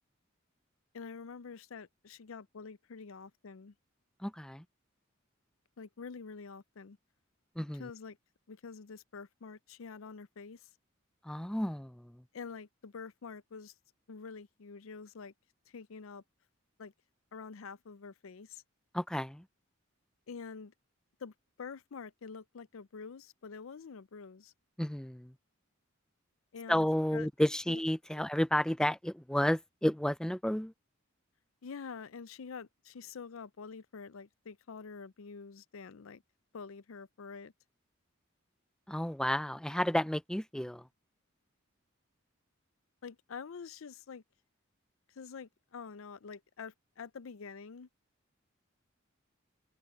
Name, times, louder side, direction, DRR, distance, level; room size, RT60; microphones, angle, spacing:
voice 1, 0.9-3.7 5.8-7.0 7.8-8.2 8.5-10.6 12.3-13.7 14.1-15.3 15.7-16.2 16.8-16.9 17.3-18.6 20.3-20.7 21.2-21.3 21.6-24.5 26.5-26.9 27.1-27.3 27.7-27.8 28.1-28.3 31.6-36.2 36.5-37.5 43.0-44.2 45.2-47.9, left 5 dB, 80° left, 0.5 m, -46 dB
voice 2, 4.2-4.6 7.6-7.9 11.2-12.2 18.9-19.4 24.8-25.3 26.7-30.7 38.9-40.8, equal, 5° left, 0.4 m, -31 dB
open air
head